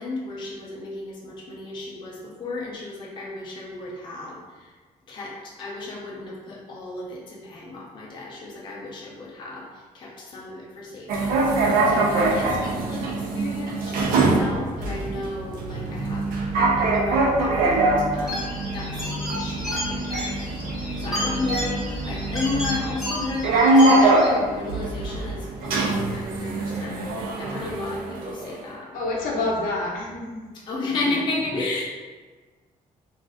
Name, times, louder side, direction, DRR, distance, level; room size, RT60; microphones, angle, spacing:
voice 1, 0.0-4.7 5.1-16.3 16.8-27.0 27.4-29.0 30.5-31.8, left 2 dB, 35° left, -3 dB, 0.5 m, -34 dB
sound 1, 11.1-28.6, right 2 dB, 85° right, 0.6 m, -23 dB
sound 2, 18.3-24.3, left 1 dB, 5° right, 0.8 m, -32 dB
voice 2, 28.9-30.4, left 2 dB, 80° left, -2 dB, 0.6 m, -27 dB
2.4 x 2.4 x 3.5 m, 1.4 s
cardioid pair, 180°, 14 cm